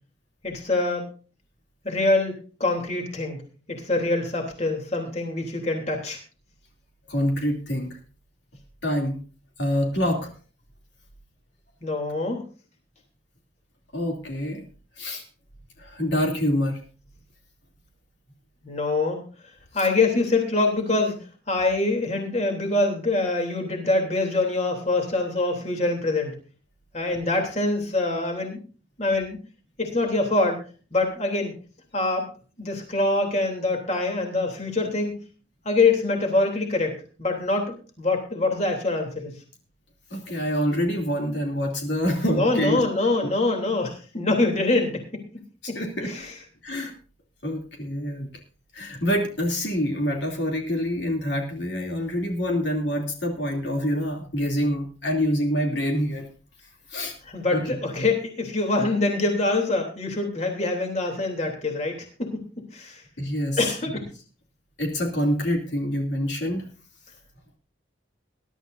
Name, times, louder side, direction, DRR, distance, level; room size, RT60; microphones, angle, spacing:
voice 1, 0.4-1.1 1.8-2.3 2.6-3.4 3.7-6.2 11.8-12.4 18.6-19.2 19.7-26.4 26.9-28.6 29.0-29.4 29.8-30.6 30.9-31.5 31.9-32.2 32.6-35.1 35.6-39.3 42.3-45.0 45.7-46.3 57.3-61.9 62.2-62.4 62.7-63.0 63.6-64.0, left 2 dB, 35° left, 2 dB, 3.2 m, -24 dB
voice 2, 7.1-8.0 8.8-9.2 9.6-10.3 13.9-14.6 15.0-15.2 15.8-16.8 40.1-42.8 43.2-43.3 45.6-46.1 46.6-46.9 47.4-48.3 48.7-56.2 56.9-57.1 57.5-57.8 63.2-63.7 64.8-66.7, equal, 70° left, 2 dB, 2.9 m, -26 dB
21.5 x 12.0 x 2.7 m, 0.37 s
head